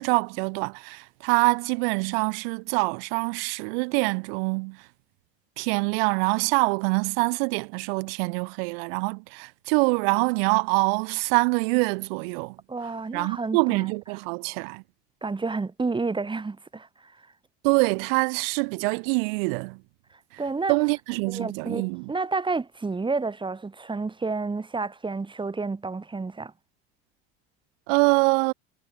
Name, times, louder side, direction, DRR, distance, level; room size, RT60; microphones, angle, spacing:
voice 1, 0.0-4.8 5.6-12.6 13.1-14.8 17.6-19.8 20.7-22.1 27.9-28.5, right 33 dB, 75° right, 4.0 m, -25 dB
voice 2, 12.7-13.9 15.2-17.2 20.4-20.7 21.2-26.5, right 3 dB, 15° right, 4.9 m, -30 dB
supercardioid pair, 105°, 29 cm